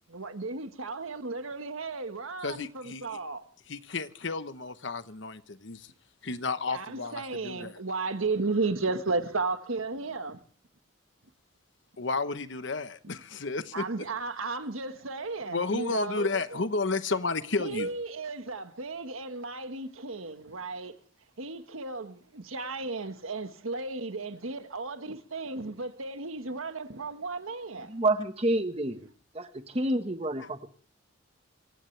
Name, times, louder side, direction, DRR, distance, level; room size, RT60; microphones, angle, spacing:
voice 1, 0.1-3.4 6.7-10.4 13.7-16.6 17.6-20.9 21.4-27.9, right 3 dB, 85° right, 1.5 m, -34 dB
voice 2, 2.4-3.2 3.7-5.9 6.2-7.8 12.0-13.9 15.5-17.9 30.4-30.5, left 3 dB, 60° left, 1.0 m, -32 dB
voice 3, 27.9-29.1 29.3-30.7, right 2 dB, 30° right, 1.4 m, -28 dB
27.0 x 16.0 x 3.4 m
head